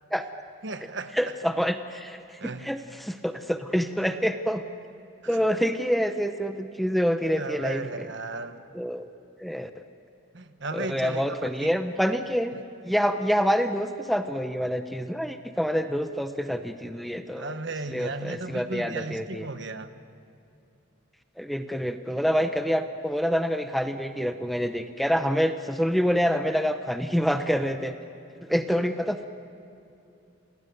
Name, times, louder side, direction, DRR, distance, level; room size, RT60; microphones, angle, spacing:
voice 1, 0.6-1.1 2.4-2.7 5.2-5.4 7.4-8.6 10.3-11.7 17.3-19.9, right 3 dB, 55° right, 10 dB, 1.2 m, -35 dB
voice 2, 1.1-4.6 5.3-8.1 8.7-9.1 9.4-9.7 10.7-12.5 12.8-17.6 17.9-19.5 21.4-27.9 28.5-29.3, equal, ahead, 8 dB, 0.8 m, -27 dB
28.5 x 19.5 x 9.5 m, 2.7 s
head